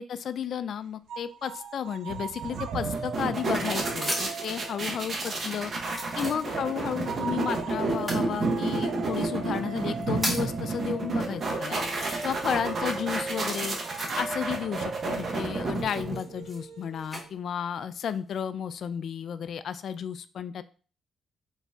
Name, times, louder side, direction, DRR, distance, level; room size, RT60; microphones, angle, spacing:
voice 1, 0.0-5.7 6.2-11.8 12.2-13.8 14.2-20.6, left 8 dB, 65° left, 13 dB, 0.3 m, -33 dB
sound 1, 1.1-5.4 6.0-17.3, right 5 dB, 85° right, 0.4 m, -40 dB
sound 2, 2.1-16.4, right 3 dB, 50° right, 0.8 m, -31 dB
sound 3, 2.9-4.5 5.2-5.3 5.8-6.9 7.9-8.3 9.1-9.2 9.8-10.6 11.3-11.4 11.8-12.7 12.9-14.5 15.7-17.2 17.9-18.4, equal, 10° right, 1.9 m, -37 dB
4.2 x 3.9 x 2.3 m, 0.39 s
cardioid pair, 85°, 0 cm